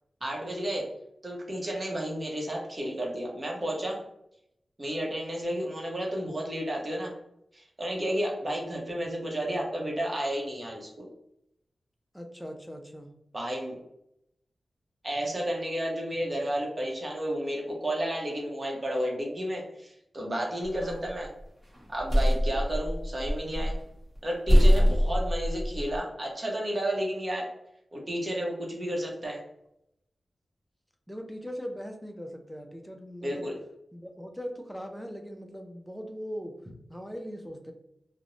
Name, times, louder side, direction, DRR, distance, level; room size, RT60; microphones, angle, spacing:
voice 1, 0.2-0.9 1.2-4.0 4.8-7.1 7.5-11.1 13.3-13.8 15.0-21.3 21.9-23.8 24.2-27.5 27.9-29.4 33.2-33.5, equal, 35° right, -1 dB, 0.8 m, -32 dB
voice 2, 12.1-13.1 20.8-21.1 31.1-33.5 33.9-36.5 36.9-37.7, equal, ahead, 3 dB, 0.4 m, -40 dB
sound 1, 20.7-21.2 21.7-23.9 24.1-24.2 24.5-26.0, equal, 15° right, 1.2 m, -23 dB
2.4 x 2.0 x 3.0 m, 0.78 s
wide cardioid pair, 85°, 0 cm